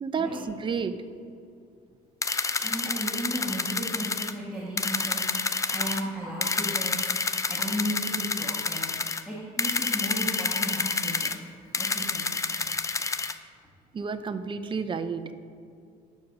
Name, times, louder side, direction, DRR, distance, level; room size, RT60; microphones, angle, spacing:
voice 1, 0.0-1.0 13.9-15.3, right 5 dB, 30° right, 10 dB, 0.6 m, -31 dB
sound 1, 2.2-4.3 4.8-6.0 6.4-9.2 9.6-11.4 11.7-13.3, left 4 dB, 20° left, 0.4 m, -29 dB
voice 2, 2.6-11.5 11.8-12.3, equal, 5° right, -4 dB, 1.4 m, -35 dB
9.6 x 6.3 x 6.1 m, 2.4 s
cardioid pair, 110°, 17 cm